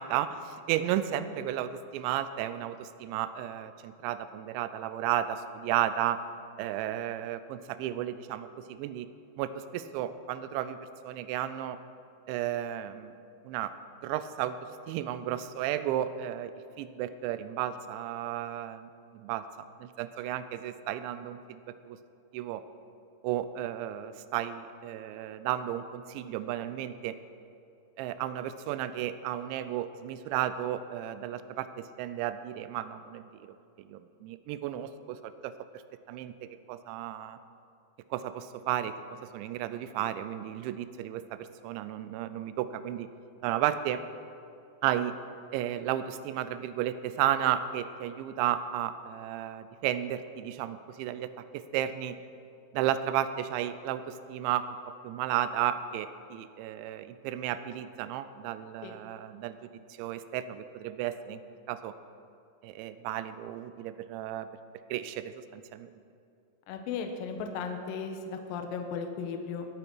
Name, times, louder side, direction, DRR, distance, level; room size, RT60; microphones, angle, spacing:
voice 1, 0.0-6.2 6.6-9.1 9.4-10.8 11.0-11.8 12.3-13.1 13.4-13.7 14.0-14.6 14.9-21.6 21.9-22.0 22.3-22.6 23.2-27.2 28.0-33.6 33.9-35.5 36.1-36.3 36.7-37.4 38.1-38.9 39.3-43.1 43.4-44.0 44.8-45.1 45.5-52.2 52.7-54.7 55.0-59.7 60.0-61.4 61.7-61.9 62.6-64.5 64.9-65.9, right 11 dB, 85° right, 12 dB, 2.7 m, -33 dB
voice 2, 66.7-69.7, left 5 dB, 85° left, 5 dB, 2.0 m, -36 dB
20.0 x 8.8 x 4.6 m, 2.5 s
omnidirectional pair, 5.6 m